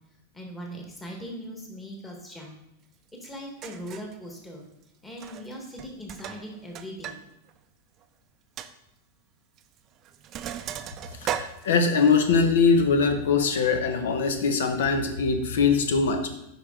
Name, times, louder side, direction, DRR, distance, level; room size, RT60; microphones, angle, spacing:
voice 1, 0.3-2.6 3.1-4.6 5.0-7.2, equal, 10° left, 0 dB, 1.5 m, -40 dB
Sink (filling or washing), 3.2-3.3 3.6-4.1 5.1-5.5 5.8-7.2 7.5-7.6 8.0-8.1 8.6-8.7 9.6-9.8 10.0-12.2, right 10 dB, 30° right, 0.4 m, -36 dB
voice 2, 11.2-16.3, left 5 dB, 85° left, 7 dB, 0.9 m, -22 dB
9.6 x 5.4 x 3.8 m, 0.85 s
supercardioid pair, 160°, 0 cm